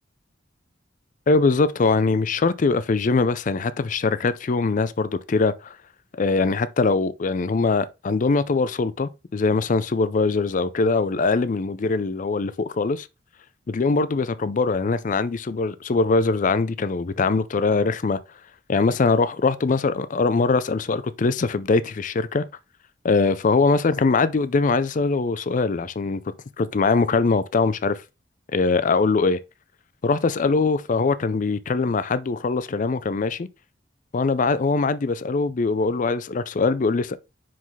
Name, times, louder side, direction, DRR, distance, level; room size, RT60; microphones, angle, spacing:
voice 1, 1.3-5.8 6.1-13.1 13.7-18.2 18.7-22.4 23.0-26.2 26.6-28.0 28.5-29.4 30.0-33.5 34.1-37.2, left 4 dB, 45° left, 0.4 m, -22 dB
5.5 x 5.1 x 3.9 m
head